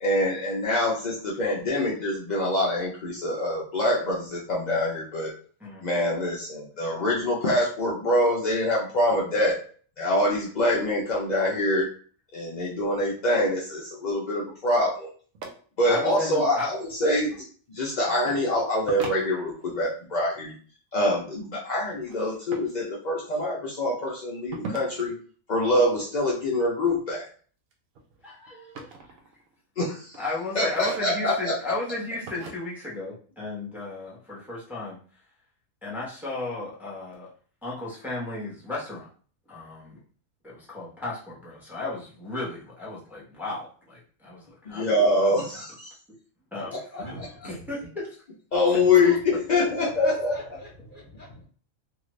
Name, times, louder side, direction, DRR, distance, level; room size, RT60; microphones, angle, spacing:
voice 1, 0.0-5.3 5.8-9.6 10.0-11.9 12.3-15.1 15.8-17.3 17.7-20.5 20.9-25.1 25.5-27.3 29.8-30.2 30.5-31.7 44.7-45.9 46.7-47.3 48.5-50.4, left 1 dB, 60° left, -4 dB, 0.4 m, -25 dB
sound 1, 15.3-15.5 16.8-17.4 18.2-18.4 18.8-19.9 22.1-22.7 24.5-25.1 27.0-27.3 27.7-29.6 30.0-30.3 30.7-31.3 32.3-32.5, right 3 dB, 75° right, 1.0 m, -40 dB
voice 2, 15.9-16.7 18.1-18.3 28.2-29.0 30.1-35.0 35.8-37.3 37.6-39.1 39.5-40.0 40.4-45.3 46.5-47.1 47.4-48.2, left 2 dB, ahead, -6 dB, 0.9 m, -35 dB
voice 3, 47.0-47.7 48.5-49.2 49.5-51.4, equal, 45° left, -3 dB, 0.9 m, -40 dB
2.7 x 2.4 x 3.1 m, 0.43 s
omnidirectional pair, 1.5 m